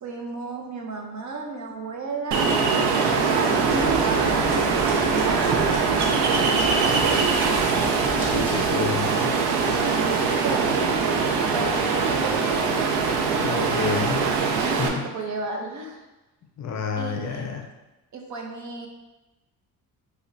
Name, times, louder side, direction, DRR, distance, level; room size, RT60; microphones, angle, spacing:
voice 1, 0.0-2.6 3.0-4.4 4.7-6.5 7.0-8.0 9.7-12.7 14.6-16.0 17.0-17.6 18.1-18.9, right 3 dB, 50° right, 2 dB, 0.6 m, -33 dB
Ocean, 2.3-14.9, right 4 dB, 85° right, 0.6 m, -22 dB
sound 1, 3.6-8.7, equal, 5° right, 1.1 m, -36 dB
voice 2, 8.3-9.4 13.4-14.2 14.8-15.1 16.6-17.7, left 6 dB, 45° left, 2 dB, 0.5 m, -29 dB
5.0 x 2.2 x 2.5 m, 1.0 s
cardioid pair, 100°, 39 cm